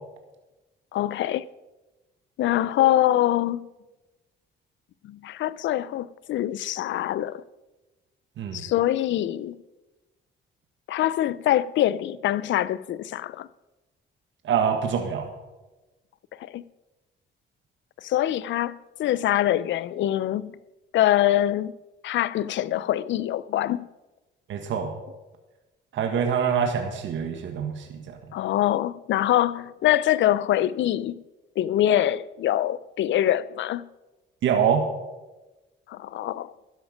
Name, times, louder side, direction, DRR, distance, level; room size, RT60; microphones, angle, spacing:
voice 1, 0.9-1.4 2.4-3.7 5.0-7.4 8.5-9.6 10.9-13.5 16.4-16.6 18.0-20.6 20.9-21.7 22.0-23.9 28.3-31.2 31.6-33.8 35.9-36.5, left 13 dB, 70° left, 0.5 m, -24 dB
voice 2, 14.4-15.3 24.5-24.9 25.9-28.2 34.4-34.9, right 7 dB, 70° right, 1.6 m, -25 dB
12.0 x 10.0 x 5.2 m
cardioid pair, 90°, 20 cm